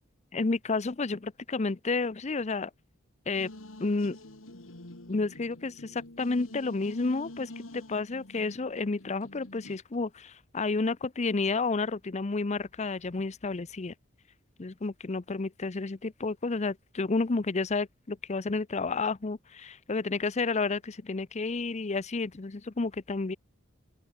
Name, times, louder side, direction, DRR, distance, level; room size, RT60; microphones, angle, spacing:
voice 1, 0.3-2.7 3.3-3.5 3.8-4.2 5.1-13.9 14.6-23.4, left 3 dB, 35° left, 0.6 m, -31 dB
sound 1, 3.3-9.8, left 1 dB, 90° left, 2.7 m, -47 dB
open air
head